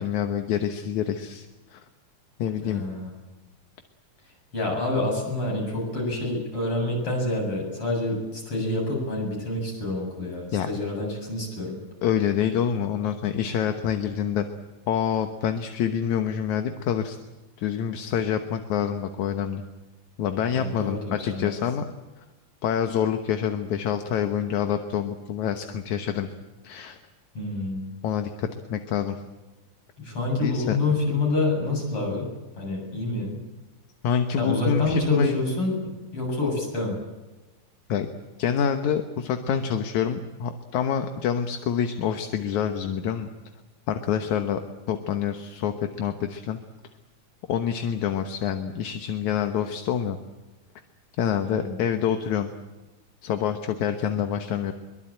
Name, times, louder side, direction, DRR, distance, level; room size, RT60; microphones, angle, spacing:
voice 1, 0.0-1.5 1.7-1.8 2.4-2.8 10.5-10.7 12.0-14.5 14.9-17.2 17.6-19.6 20.2-21.8 22.6-26.3 26.6-27.0 28.0-29.2 30.4-30.8 34.0-35.4 37.9-38.1 38.4-43.3 43.9-44.6 44.9-46.6 47.5-50.2 51.2-52.5 53.2-54.7, left 8 dB, 80° left, 7 dB, 2.6 m, -26 dB
voice 2, 2.6-3.1 4.5-11.8 20.5-21.5 27.4-27.9 30.0-33.4 34.4-37.0 51.4-51.8, left 2 dB, 45° left, 0 dB, 9.0 m, -27 dB
23.5 x 23.0 x 8.9 m, 1.1 s
omnidirectional pair, 3.4 m